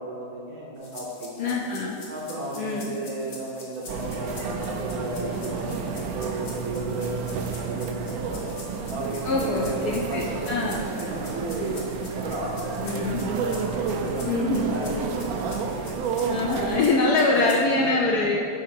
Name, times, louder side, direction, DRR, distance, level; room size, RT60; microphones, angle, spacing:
voice 1, 0.0-1.5 2.1-8.6 8.9-11.8 12.1-15.9 16.4-18.0, right 2 dB, 60° right, -3 dB, 1.1 m, -34 dB
sound 1, 0.8-17.6, left 3 dB, 50° left, 1.4 m, -45 dB
voice 2, 1.4-2.0 2.6-2.9 9.3-10.8 12.8-13.2 14.3-14.8 16.3-18.4, left 3 dB, 75° left, -1 dB, 0.9 m, -24 dB
sound 2, 3.9-16.9, right 5 dB, 85° right, 0.8 m, -31 dB
6.2 x 4.3 x 5.8 m, 2.6 s
omnidirectional pair, 2.2 m